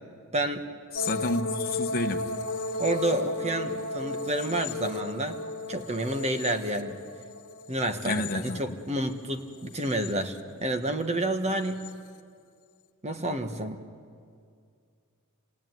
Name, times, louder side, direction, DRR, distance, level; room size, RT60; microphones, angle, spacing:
voice 1, 0.3-0.6 2.8-5.4 5.7-7.0 7.7-11.9 13.0-13.8, right 1 dB, 30° right, 7 dB, 1.3 m, -29 dB
sound 1, 0.9-9.1 9.5-10.4 11.6-11.9, left 2 dB, 90° left, 1.4 m, -35 dB
voice 2, 0.9-2.4 8.0-8.8, left 2 dB, 45° left, 3 dB, 1.1 m, -30 dB
27.5 x 19.0 x 9.3 m, 2.3 s
head